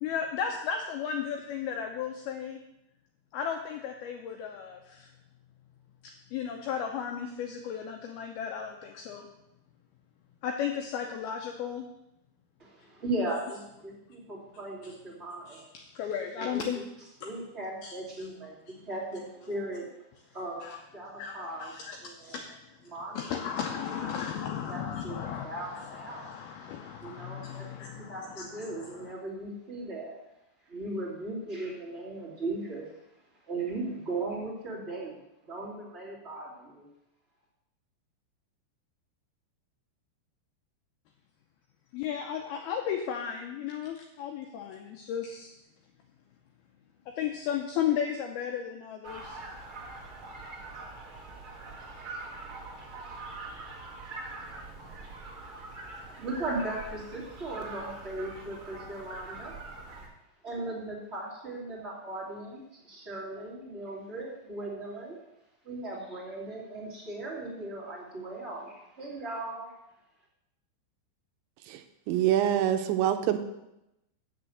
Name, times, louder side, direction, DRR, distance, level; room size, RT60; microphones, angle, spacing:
voice 1, 0.0-2.6 3.3-5.1 6.3-9.3 10.4-11.9 13.3-13.4 15.5-16.8 17.2-17.3 17.8-18.3 20.6-20.8 21.2-22.6 23.1-29.1 41.9-45.5 47.2-49.4, left 8 dB, 85° left, 3 dB, 2.2 m, -35 dB
voice 2, 12.6-15.6 16.4-16.8 17.2-19.9 20.3-20.6 20.9-21.7 22.0-22.4 22.9-23.3 23.9-24.2 24.7-25.2 25.4-26.3 27.0-27.7 28.0-30.2 30.6-33.0 33.5-36.9 55.5-59.8 60.4-65.2 65.6-69.7, right 2 dB, 20° right, -6 dB, 1.8 m, -38 dB
sound 1, 49.0-60.1, right 2 dB, 50° right, 1.6 m, -43 dB
voice 3, 72.1-73.4, right 11 dB, 85° right, 8 dB, 2.9 m, -25 dB
8.0 x 6.7 x 7.8 m, 0.88 s
omnidirectional pair, 5.4 m